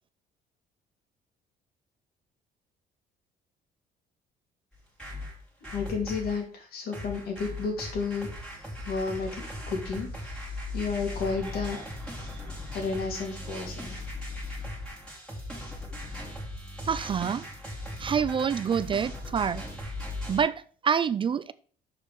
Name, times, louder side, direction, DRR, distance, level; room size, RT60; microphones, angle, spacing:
sound 1, 4.7-6.4 6.9-20.4, left 1 dB, 5° left, 2.8 m, -38 dB
voice 1, 5.7-8.4 8.8-11.8 12.7-14.0, left 5 dB, 65° left, 2.9 m, -32 dB
voice 2, 16.8-17.4 18.0-19.7 20.3-21.5, right 7 dB, 30° right, 0.3 m, -27 dB
6.5 x 5.1 x 5.0 m
cardioid pair, 110°, 17 cm